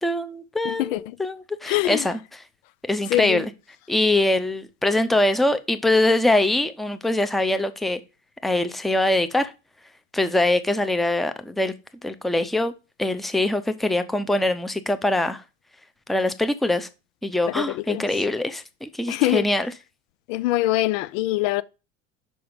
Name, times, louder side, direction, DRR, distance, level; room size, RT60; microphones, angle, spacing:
voice 1, 0.0-2.2 2.9-3.5 3.9-8.0 8.4-9.5 10.1-11.7 12.0-12.7 13.0-15.4 16.1-16.9 17.2-19.7, left 1 dB, ahead, 0.6 m, -23 dB
voice 2, 0.6-1.1 1.6-2.1 3.1-3.4 17.5-18.0 19.1-19.5 20.3-21.6, left 16 dB, 75° left, 0.6 m, -24 dB
5.5 x 5.0 x 5.1 m
hypercardioid pair, 80°, 39 cm